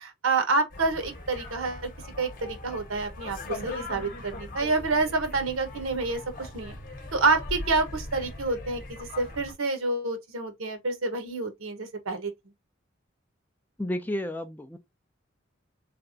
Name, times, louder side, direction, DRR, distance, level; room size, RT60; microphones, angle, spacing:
voice 1, 0.0-1.9 2.2-6.8 7.1-12.3, right 3 dB, 80° right, 1.2 m, -28 dB
sound 1, 0.7-9.5, left 2 dB, 40° left, 0.9 m, -40 dB
voice 2, 13.8-14.8, left 1 dB, 10° left, 0.4 m, -31 dB
3.9 x 3.4 x 2.6 m
head